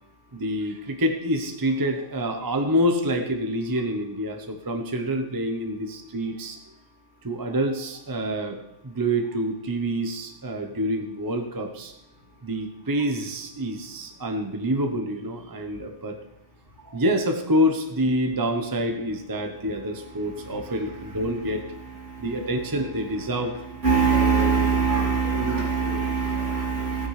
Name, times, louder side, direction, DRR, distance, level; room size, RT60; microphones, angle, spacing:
voice 1, 0.3-6.6 7.2-11.9 12.4-16.2 16.8-21.7 22.2-23.6 24.2-25.0 25.3-26.1, equal, 20° right, 5 dB, 0.7 m, -27 dB
voice 2, 20.4-20.7 22.0-22.5 23.8-27.1, right 5 dB, 65° right, -6 dB, 3.5 m, -23 dB
15.0 x 9.7 x 3.3 m, 0.84 s
omnidirectional pair, 1.3 m